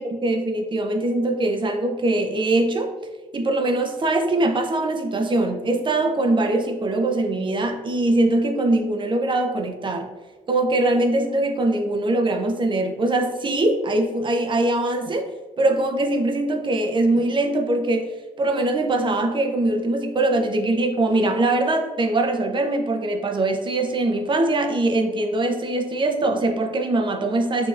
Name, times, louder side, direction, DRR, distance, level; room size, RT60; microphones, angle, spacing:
voice 1, 0.0-2.9 3.3-10.1 10.5-15.3 15.6-27.7, right 2 dB, 35° right, 3 dB, 0.7 m, -22 dB
6.3 x 2.8 x 2.5 m, 1.3 s
supercardioid pair, 75°, 14 cm